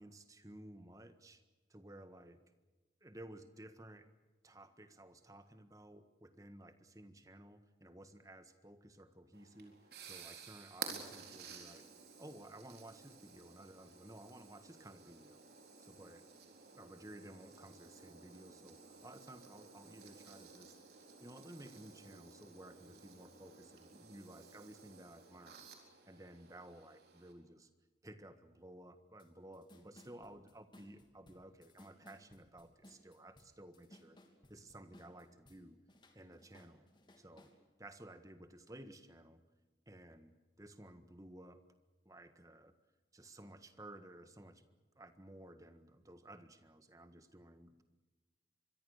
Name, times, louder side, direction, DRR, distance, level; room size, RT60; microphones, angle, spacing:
voice 1, 0.0-1.4 1.7-2.4 3.0-4.1 4.4-11.9 12.2-15.4 15.8-16.2 16.7-20.8 21.2-25.7 26.0-27.7 28.0-34.2 34.5-35.8 36.1-36.8 37.2-37.5 37.8-39.4 39.9-40.3 40.6-41.6 42.0-42.7 43.1-44.7 44.9-47.8, right 1 dB, 20° right, 9 dB, 1.6 m, -55 dB
sound 1, 9.3-27.3, right 6 dB, 65° right, 4.1 m, -54 dB
sound 2, 29.2-29.3 29.5-35.6 35.9-37.6, left 1 dB, 25° left, 3.0 m, -62 dB
26.0 x 22.5 x 6.6 m, 1.2 s
head